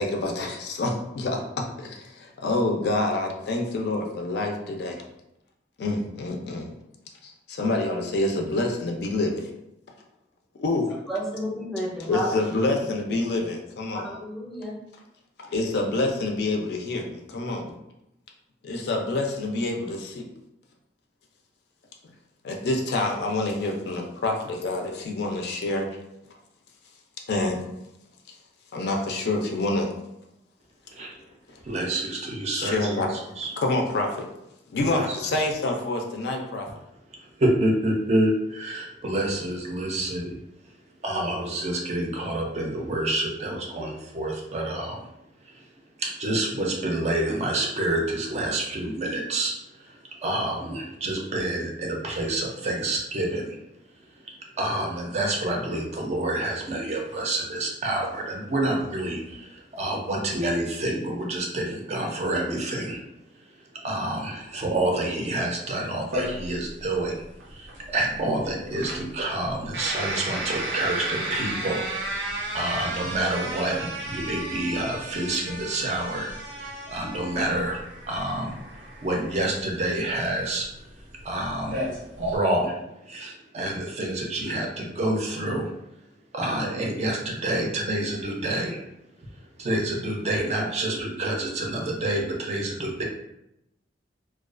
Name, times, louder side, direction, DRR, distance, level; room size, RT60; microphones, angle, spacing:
voice 1, 0.0-5.0 5.8-6.7 7.2-9.5 10.6-10.9 12.1-14.1 15.4-17.7 18.6-20.3 22.4-25.9 27.3-27.6 28.7-29.9 32.6-33.1 33.6-34.3 34.7-36.7, left 2 dB, 65° left, 0.4 m, -27 dB
voice 2, 11.1-12.6 14.0-14.7, equal, ahead, 0.6 m, -31 dB
voice 3, 31.6-32.9 33.4-33.5 34.8-35.2 37.4-40.3 41.0-45.0 46.0-49.5 50.2-53.6 54.6-63.0 63.8-67.2 67.5-67.7 67.9-76.3 76.6-77.8 78.1-78.5 79.0-80.7 81.2-81.8 82.2-82.7 83.1-85.7 86.3-88.8 89.6-93.0, right 1 dB, 40° right, 0.4 m, -28 dB
sound 1, 66.1-82.4, right 1 dB, 85° right, 0.6 m, -34 dB
2.3 x 2.2 x 2.4 m
head